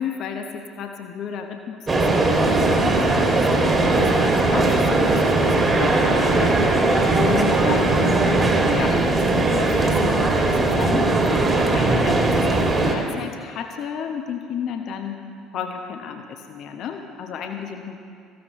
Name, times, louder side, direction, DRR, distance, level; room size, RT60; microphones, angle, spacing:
voice 1, 0.0-6.8 7.2-8.3 8.7-15.2 15.5-18.0, left 7 dB, 50° left, 4 dB, 1.1 m, -32 dB
sound 1, 1.9-12.9, right 2 dB, 25° right, 2.3 m, -19 dB
18.5 x 15.0 x 3.1 m, 2.2 s
figure-of-eight pair, 55°, 0 cm